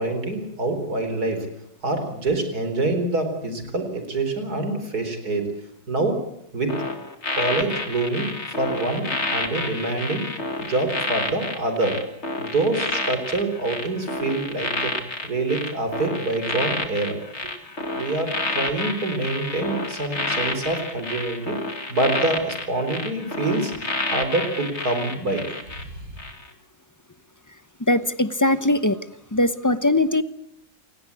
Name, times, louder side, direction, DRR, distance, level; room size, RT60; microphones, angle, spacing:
voice 1, 0.0-1.5 1.8-5.5 5.9-6.2 6.5-6.7 7.4-10.3 10.6-12.0 12.4-14.9 15.2-17.2 18.0-21.6 21.9-23.7 24.1-25.5 25.8-25.9, right 2 dB, 80° right, 7 dB, 4.7 m, -26 dB
sound 1, 6.7-25.8 26.2-26.5, left 2 dB, 45° left, 2.7 m, -29 dB
voice 2, 27.9-29.0 29.3-30.2, left 1 dB, 15° left, 13 dB, 0.7 m, -20 dB
28.0 x 18.5 x 8.4 m, 0.76 s
omnidirectional pair, 1.6 m